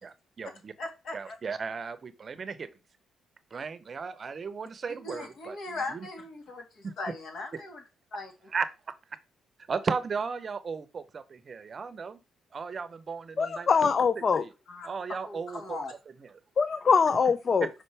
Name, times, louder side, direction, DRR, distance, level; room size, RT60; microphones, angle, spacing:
voice 1, 0.0-0.7 1.1-2.7 3.5-5.6 5.9-6.1 6.8-6.9 8.5-8.7 9.7-12.2 12.5-13.9 14.2-14.5 14.8-15.8 16.2-16.3 17.6-17.7, right 5 dB, 40° right, 0.7 m, -35 dB
voice 2, 0.8-1.3 5.0-7.8 8.1-8.3 14.7-14.9 15.2-15.9, left 3 dB, 60° left, 1.9 m, -39 dB
voice 3, 13.4-14.4 16.6-17.7, left 5 dB, 45° left, 0.5 m, -23 dB
5.6 x 5.0 x 3.4 m
cardioid pair, 90°, 0 cm